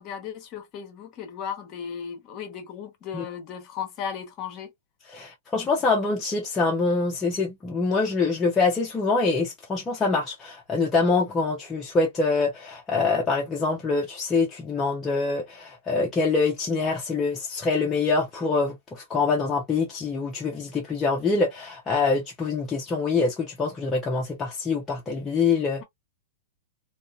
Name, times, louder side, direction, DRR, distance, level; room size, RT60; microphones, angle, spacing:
voice 1, 0.0-4.7, left 7 dB, 35° left, 0.9 m, -36 dB
voice 2, 5.1-25.8, left 4 dB, 15° left, 0.6 m, -25 dB
2.6 x 2.3 x 2.3 m
hypercardioid pair, 135°, 0 cm